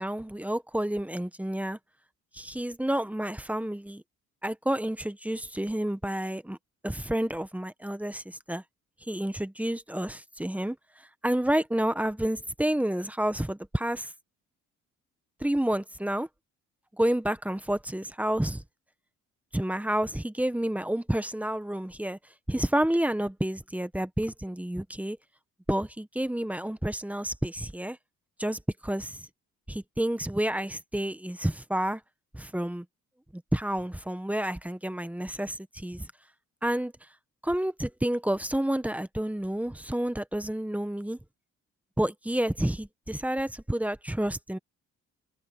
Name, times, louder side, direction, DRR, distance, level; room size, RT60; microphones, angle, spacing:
voice 1, 0.0-1.8 2.3-4.0 4.4-6.6 6.8-8.6 9.0-14.1 15.4-16.3 17.0-18.6 19.5-22.2 22.5-25.2 25.7-28.0 28.4-29.3 29.7-32.0 32.3-32.8 33.3-36.1 36.6-36.9 37.4-41.2 42.0-44.6, right 1 dB, 5° right, 1.3 m, -29 dB
cardioid pair, 90°, 30 cm